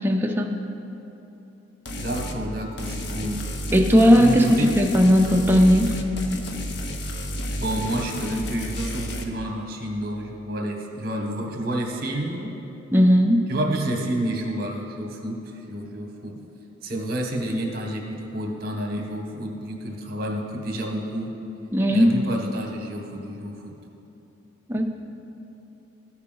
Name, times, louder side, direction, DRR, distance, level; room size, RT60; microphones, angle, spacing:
voice 1, 0.0-0.5 3.7-5.9 12.9-13.4 21.7-22.1 24.7-24.9, equal, 10° right, 1 dB, 0.4 m, -17 dB
sound 1, 1.9-2.4 2.8-9.2, equal, 55° left, 0.6 m, -31 dB
voice 2, 2.0-3.4 3.9-4.7 7.5-12.5 13.5-15.4 15.7-16.4 16.8-21.3 21.9-23.7, right 1 dB, 45° right, 1 dB, 0.9 m, -29 dB
14.0 x 4.7 x 3.7 m, 3.0 s
head